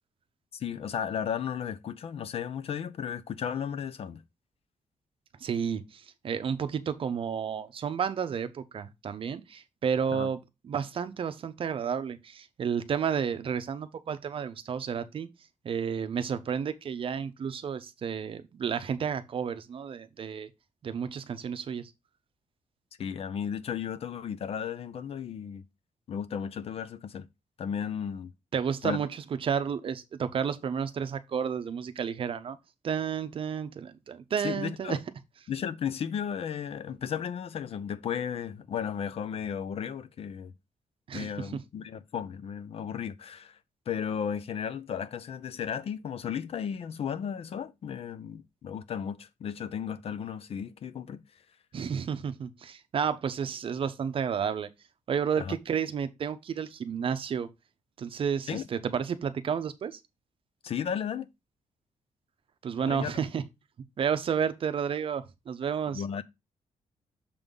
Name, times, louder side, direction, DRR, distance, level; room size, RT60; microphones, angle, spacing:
voice 1, 0.5-4.2 10.1-10.3 23.0-25.6 26.1-27.3 27.6-28.3 28.8-29.0 34.4-35.0 35.5-40.5 41.1-43.6 43.9-51.2 55.4-55.6 58.5-58.7 60.6-61.3 62.9-63.1 65.9-66.2, left 8 dB, 50° left, 0.5 m, -34 dB
voice 2, 5.4-10.4 10.6-15.3 15.6-20.5 20.8-21.9 28.5-32.6 32.8-35.0 41.1-41.6 51.7-54.7 55.1-57.5 58.0-60.0 62.6-63.4 64.0-66.0, right 7 dB, 45° right, 0.7 m, -31 dB
6.8 x 3.8 x 5.3 m
wide cardioid pair, 175°, 13 cm